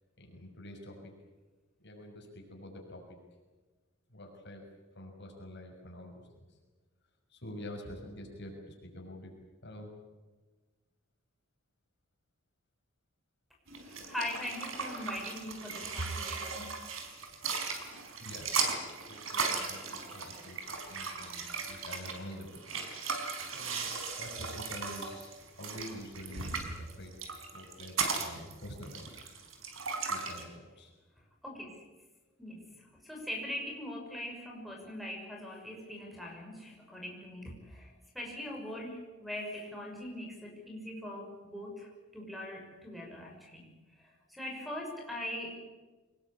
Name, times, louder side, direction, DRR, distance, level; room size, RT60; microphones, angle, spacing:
voice 1, 0.2-1.1 1.8-3.2 4.1-4.7 4.9-6.6 7.3-9.3 9.6-9.9 18.2-18.5 19.1-22.6 23.5-27.1 27.5-29.1 30.1-30.9, left 1 dB, 55° left, 1 dB, 6.2 m, -47 dB
sound 1, 13.7-30.4, right 5 dB, 75° right, 5.1 m, -37 dB
voice 2, 13.9-16.7 31.4-31.8 32.4-32.7 33.0-41.9 42.1-43.7 44.0-45.5, left 1 dB, ahead, 1 dB, 6.2 m, -41 dB
25.5 x 20.5 x 8.6 m, 1.3 s
head